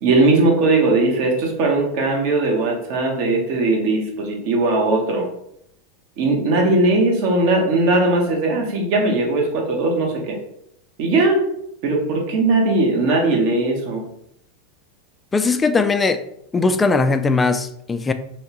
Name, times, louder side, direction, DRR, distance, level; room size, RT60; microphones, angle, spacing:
voice 1, 0.0-5.3 6.2-10.4 11.0-11.4 11.8-14.0, right 2 dB, 55° right, 0 dB, 1.1 m, -19 dB
voice 2, 15.3-16.2 16.5-18.1, left 3 dB, 20° left, 9 dB, 0.3 m, -19 dB
3.3 x 3.1 x 2.9 m, 0.75 s
hypercardioid pair, 95°, 0 cm